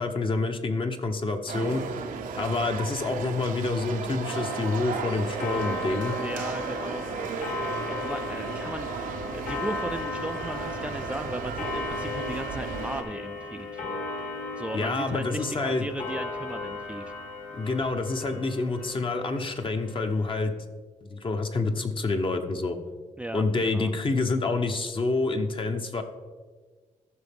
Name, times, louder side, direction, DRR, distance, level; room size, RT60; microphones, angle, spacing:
voice 1, 0.0-1.8 2.4-6.2 14.7-15.8 17.5-20.5 21.0-22.8 23.3-26.0, left 3 dB, 40° left, 6 dB, 1.0 m, -27 dB
sound 1, 1.5-13.0, right 6 dB, 85° right, 0.8 m, -35 dB
Clock, 4.3-20.4, left 3 dB, 75° left, 2.1 m, -36 dB
voice 2, 6.2-7.1 7.9-13.9 14.6-17.1 23.2-23.9, right 1 dB, 10° right, 8 dB, 0.4 m, -36 dB
14.0 x 5.8 x 3.6 m, 1.4 s
cardioid pair, 85°, 14 cm